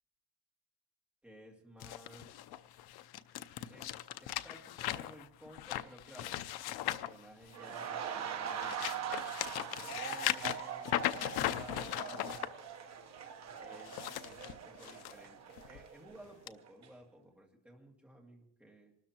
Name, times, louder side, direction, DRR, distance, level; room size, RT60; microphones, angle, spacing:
voice 1, 1.2-2.4 3.7-3.9 4.2-9.5 9.8-12.5 13.6-18.9, equal, 5° right, -1 dB, 2.2 m, -56 dB
sound 1, 1.8-7.9 8.4-12.5 13.7-15.1 15.6-15.8 16.5-16.6, left 13 dB, 60° left, 0.7 m, -38 dB
sound 2, 7.5-16.4 16.7-16.9, right 8 dB, 40° right, 1.1 m, -42 dB
27.0 x 13.0 x 3.0 m, 0.70 s
cardioid pair, 175°, 43 cm